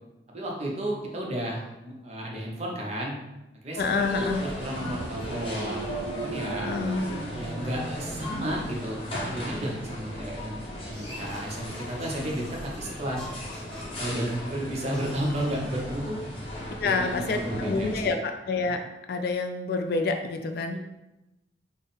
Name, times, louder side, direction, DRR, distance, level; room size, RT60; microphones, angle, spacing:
voice 1, 0.3-3.1 3.6-6.7 7.3-13.2 14.0-16.2 16.8-18.2, right 1 dB, 35° right, -2 dB, 0.7 m, -33 dB
voice 2, 3.8-4.4 6.6-7.1 16.8-20.8, left 3 dB, 60° left, 5 dB, 0.3 m, -28 dB
sound 1, 3.8-18.1, left 1 dB, 30° left, 0.7 m, -37 dB
sound 2, 4.6-9.2, right 4 dB, 90° right, 0.4 m, -38 dB
sound 3, 10.9-12.8 13.2-14.4 14.9-15.7, left 1 dB, 5° left, 0.9 m, -48 dB
3.6 x 2.0 x 4.0 m, 0.96 s
head